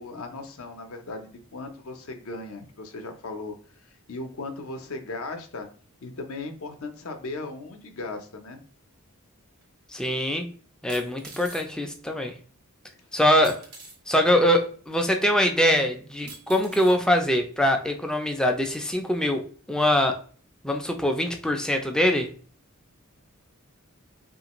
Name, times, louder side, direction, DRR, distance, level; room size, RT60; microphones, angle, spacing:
voice 1, 0.0-3.6 4.1-5.7 6.0-8.6, left 3 dB, 70° left, 5 dB, 0.5 m, -37 dB
sound 1, 9.6-9.7 10.9-11.7 13.4-14.0 15.0-15.1 16.3-17.0 17.7-17.8, right 3 dB, 85° right, 0.9 m, -44 dB
voice 2, 9.9-10.5 10.8-12.3 13.1-13.6 14.1-19.4 19.7-20.2 20.6-22.3, left 1 dB, 5° left, 4 dB, 0.3 m, -23 dB
3.0 x 2.4 x 2.9 m, 0.43 s
head